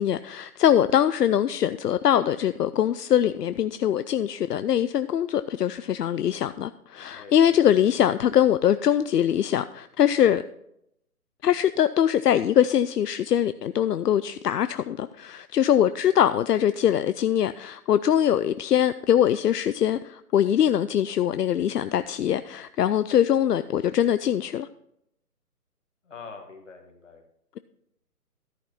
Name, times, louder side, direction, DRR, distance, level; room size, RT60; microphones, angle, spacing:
voice 1, 0.0-10.4 11.4-24.7, left 10 dB, 80° left, 0.6 m, -22 dB
voice 2, 7.2-7.7 26.1-27.2, left 4 dB, 50° left, 2.1 m, -44 dB
13.5 x 5.9 x 4.1 m
hypercardioid pair, 180°, 47 cm